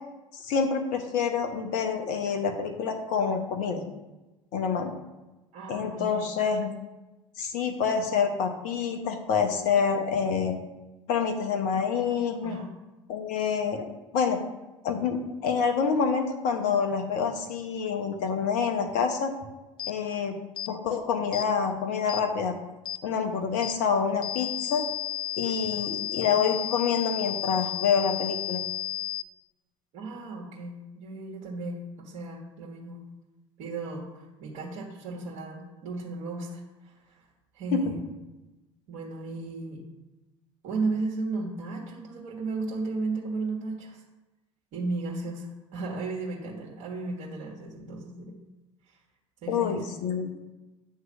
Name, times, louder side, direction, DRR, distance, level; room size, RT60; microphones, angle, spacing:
voice 1, 0.3-3.9 4.5-4.9 5.7-6.7 7.4-10.6 11.1-12.6 13.1-14.4 14.8-19.3 19.9-20.4 20.7-22.5 23.0-24.8 25.4-28.6 37.7-37.9 49.5-50.3, left 6 dB, 55° left, 5 dB, 0.9 m, -27 dB
voice 2, 5.5-6.4 12.4-12.7 29.9-33.0 33.6-37.3 37.5-38.1 38.9-39.8 40.6-44.0 44.7-48.4 48.9-49.0 49.4-50.0, right 3 dB, 50° right, -4 dB, 1.5 m, -35 dB
sound 1, 19.8-20.0 20.6-20.7 21.3-21.5 22.1-22.3 22.9-23.0 23.6-23.8 24.2-29.2, left 12 dB, 30° left, 0.5 m, -33 dB
9.3 x 3.1 x 6.2 m, 1.1 s
figure-of-eight pair, 65°, 16 cm